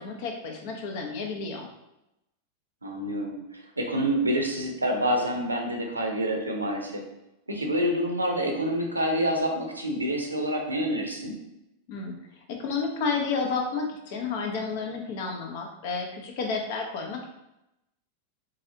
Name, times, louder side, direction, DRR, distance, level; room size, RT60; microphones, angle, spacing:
voice 1, 0.0-1.7 11.9-12.2 12.5-17.3, left 4 dB, 50° left, 2 dB, 0.6 m, -31 dB
voice 2, 2.8-7.0 7.5-11.4, equal, 80° right, 2 dB, 0.6 m, -27 dB
4.0 x 2.7 x 2.6 m, 0.89 s
figure-of-eight pair, 90°, 0 cm